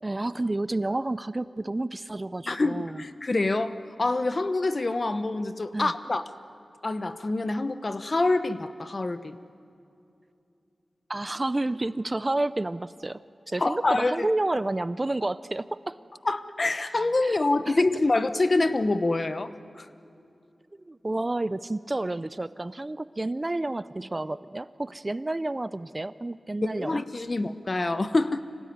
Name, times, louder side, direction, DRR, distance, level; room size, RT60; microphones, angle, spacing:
voice 1, 0.0-3.0 5.7-5.9 11.1-13.2 13.5-16.0 17.2-17.4 17.7-17.8 20.9-27.0, right 2 dB, 25° right, 15 dB, 0.4 m, -30 dB
voice 2, 2.5-6.2 6.8-9.4 13.6-14.3 16.2-19.5 19.8-19.9 26.7-28.4, left 2 dB, 40° left, 11 dB, 1.0 m, -26 dB
26.0 x 17.0 x 9.4 m, 2.7 s
wide cardioid pair, 95°, 0 cm